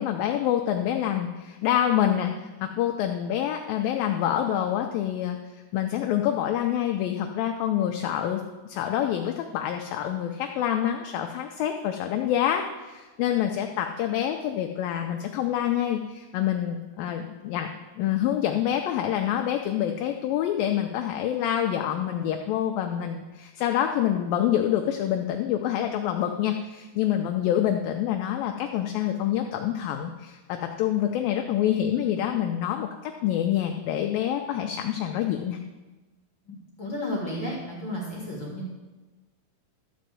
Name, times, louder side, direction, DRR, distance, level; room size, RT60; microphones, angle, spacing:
voice 1, 0.0-2.3 2.6-5.4 5.7-8.4 8.7-17.7 18.0-35.6, left 10 dB, 80° left, 4 dB, 2.1 m, -26 dB
voice 2, 36.5-38.7, left 1 dB, 40° left, -4 dB, 2.0 m, -33 dB
12.5 x 5.1 x 7.7 m, 1.2 s
omnidirectional pair, 4.7 m